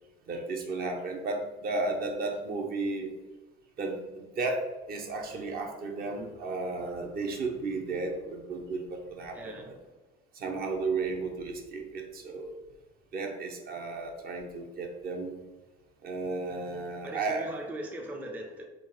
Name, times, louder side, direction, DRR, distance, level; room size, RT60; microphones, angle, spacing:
voice 1, 0.3-3.1 3.8-9.8 10.3-12.5 13.1-15.4 16.0-17.5, right 3 dB, 50° right, 2 dB, 0.7 m, -34 dB
voice 2, 9.3-9.7 17.0-18.7, right 1 dB, 10° right, 1 dB, 0.5 m, -39 dB
3.6 x 2.4 x 3.7 m, 1.1 s
cardioid pair, 105°, 20 cm